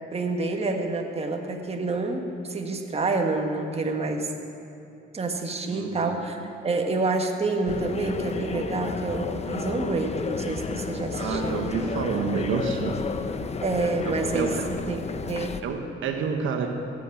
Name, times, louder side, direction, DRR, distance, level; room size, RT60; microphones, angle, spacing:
voice 1, 0.1-4.3 5.1-11.6 13.6-15.6, right 3 dB, 30° right, 3 dB, 1.5 m, -28 dB
voice 2, 5.7-6.2 11.2-13.0 14.0-14.7 15.6-16.7, right 5 dB, 80° right, 4 dB, 1.1 m, -29 dB
sound 1, 7.7-15.6, left 5 dB, 30° left, 0.7 m, -32 dB
15.5 x 8.5 x 7.2 m, 2.6 s
cardioid pair, 90°, 20 cm